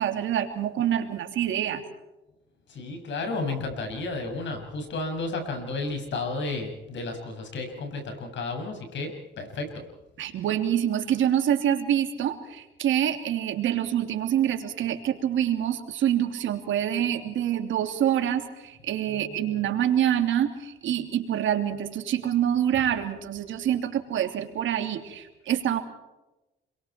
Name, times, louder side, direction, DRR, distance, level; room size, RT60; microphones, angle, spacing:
voice 1, 0.0-1.8 10.2-25.8, right 10 dB, 80° right, 5 dB, 3.0 m, -26 dB
voice 2, 2.7-9.9 19.1-19.8, left 3 dB, 65° left, 4 dB, 6.9 m, -33 dB
30.0 x 23.0 x 4.6 m, 1.0 s
cardioid pair, 90°, 20 cm